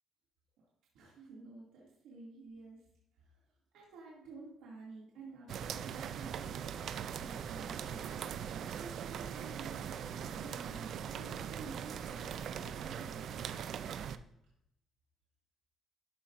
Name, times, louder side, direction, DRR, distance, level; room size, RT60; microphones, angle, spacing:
voice 1, 0.9-2.8 3.1-3.4 3.7-6.9 7.1-13.3, right 3 dB, 90° right, -5 dB, 2.5 m, -51 dB
sound 1, 5.5-14.2, right 8 dB, 65° right, 0.4 m, -41 dB
13.0 x 5.6 x 2.6 m, 0.80 s
cardioid pair, 100°, 0 cm